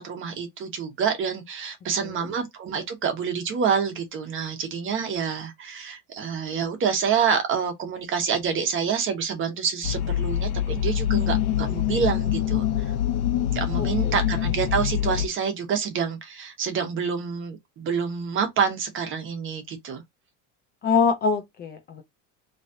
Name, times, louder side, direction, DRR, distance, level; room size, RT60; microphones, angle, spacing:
voice 1, 0.0-12.9 13.5-20.0, right 6 dB, 30° right, 1.3 m, -27 dB
sound 1, 9.8-15.3, left 11 dB, 80° left, 0.9 m, -25 dB
voice 2, 13.8-14.1 20.8-22.0, left 5 dB, 25° left, 0.5 m, -25 dB
4.0 x 3.3 x 2.7 m
cardioid pair, 170°, 37 cm